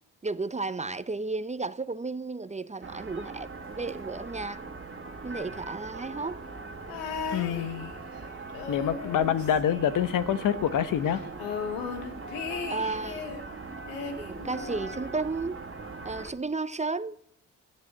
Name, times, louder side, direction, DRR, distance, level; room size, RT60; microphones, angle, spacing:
voice 1, 0.2-3.5 3.8-4.6 5.2-6.4 12.7-13.3 14.2-15.6 16.0-17.2, right 3 dB, 20° right, 0.7 m, -33 dB
sound 1, 2.8-16.3, right 3 dB, 35° right, 2.1 m, -41 dB
sound 2, 6.9-8.2 8.5-10.4 10.7-10.8 11.1-13.5 13.9-15.1 16.0-16.1, left 5 dB, 90° left, 1.5 m, -37 dB
voice 2, 7.3-7.9 8.7-11.2, left 9 dB, 65° left, 1.1 m, -26 dB
13.0 x 10.5 x 8.1 m
hypercardioid pair, 50°, 34 cm